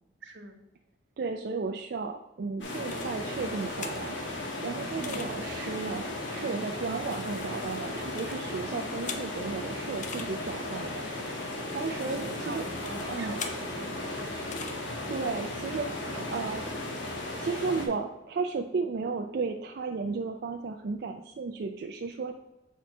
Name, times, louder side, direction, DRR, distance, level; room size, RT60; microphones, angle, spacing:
voice 1, 0.2-0.6 5.0-5.3 6.9-7.0 11.9-14.4 16.1-16.4, right 2 dB, 85° right, 4 dB, 1.0 m, -44 dB
voice 2, 1.2-4.2 4.6-11.1 11.7-12.6 13.1-13.4 15.1-16.9 17.4-22.4, right 4 dB, 60° right, 5 dB, 0.4 m, -34 dB
sound 1, 2.6-17.9, left 1 dB, 80° left, 1.3 m, -36 dB
sound 2, 2.6-4.3 5.0-5.3 6.5-9.5 10.0-10.3 11.3-13.6 14.5-14.8, left 5 dB, 40° left, 0.6 m, -43 dB
sound 3, 11.0-17.6, equal, 20° right, 1.1 m, -51 dB
4.6 x 4.2 x 5.9 m, 0.98 s
head